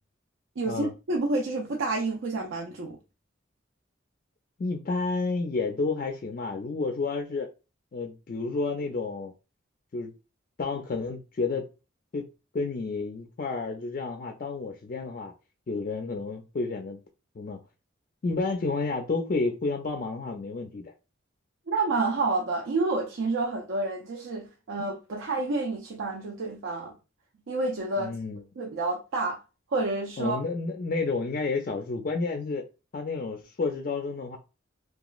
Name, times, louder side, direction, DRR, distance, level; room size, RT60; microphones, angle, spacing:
voice 1, 0.6-3.0 21.7-27.0 27.5-28.2 28.6-29.4 29.7-30.4, right 3 dB, 80° right, 0.5 m, -29 dB
voice 2, 4.6-7.5 7.9-9.3 9.9-10.1 10.6-11.7 12.1-12.3 12.5-15.3 15.7-17.0 17.4-17.6 18.2-20.8 28.0-28.4 30.2-32.6 32.9-34.4, left 3 dB, 45° left, 0.3 m, -30 dB
2.9 x 2.3 x 2.3 m
head